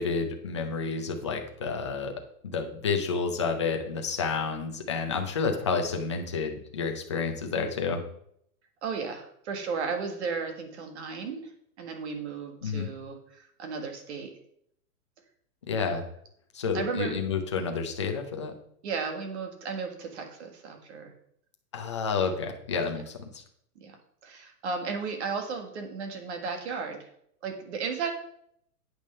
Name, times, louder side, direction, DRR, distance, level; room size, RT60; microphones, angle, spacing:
voice 1, 0.0-2.1 2.4-8.0 12.6-12.9 15.7-16.0 16.5-18.5 21.7-23.4, left 5 dB, 20° left, 4 dB, 0.5 m, -30 dB
voice 2, 8.8-11.5 11.8-14.3 16.7-17.2 17.6-17.7 18.8-21.1 23.8-24.0 24.2-27.1 27.4-28.1, right 5 dB, 45° right, 4 dB, 1.7 m, -34 dB
8.6 x 6.4 x 5.4 m, 0.69 s
hypercardioid pair, 170°, 47 cm